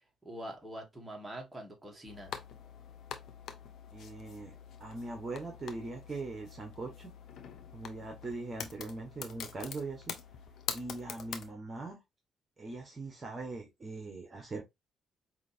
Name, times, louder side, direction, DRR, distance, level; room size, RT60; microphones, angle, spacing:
voice 1, 0.2-2.3, right 1 dB, 10° right, 1.6 m, -44 dB
sound 1, 2.1-11.5, left 7 dB, 70° left, 0.7 m, -45 dB
voice 2, 3.9-7.1 7.7-10.1 10.7-12.0 12.6-14.6, right 3 dB, 35° right, 1.3 m, -41 dB
4.9 x 2.9 x 2.6 m
cardioid pair, 90°, 0 cm